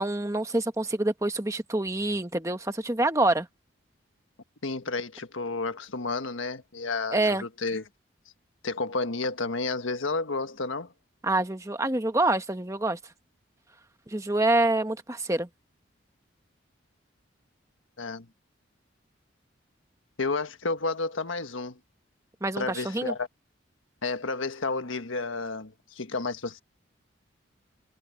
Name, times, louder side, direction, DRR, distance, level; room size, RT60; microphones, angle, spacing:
voice 1, 0.0-3.5 7.1-7.4 11.2-13.0 14.1-15.5 22.4-23.1, right 2 dB, 15° right, 1.1 m, -26 dB
voice 2, 4.6-7.8 8.6-10.9 18.0-18.3 20.2-21.8 22.6-23.3 24.0-26.6, left 3 dB, 85° left, 1.5 m, -31 dB
head